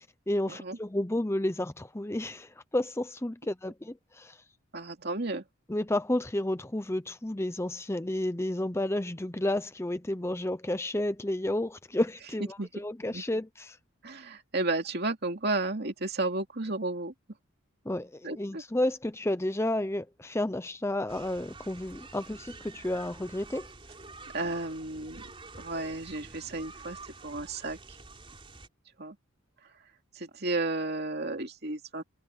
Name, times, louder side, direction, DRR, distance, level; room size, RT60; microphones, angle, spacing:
voice 1, 0.0-4.4 5.7-13.8 17.8-23.7, left 1 dB, 15° left, 0.7 m, -31 dB
voice 2, 4.7-5.4 12.6-12.7 13.1-13.2 14.0-17.1 18.2-18.6 24.3-25.2 25.6-27.8 29.0-29.2 30.2-32.0, right 2 dB, 50° right, 2.6 m, -33 dB
sound 1, 21.1-28.7, right 3 dB, 25° right, 3.9 m, -48 dB
head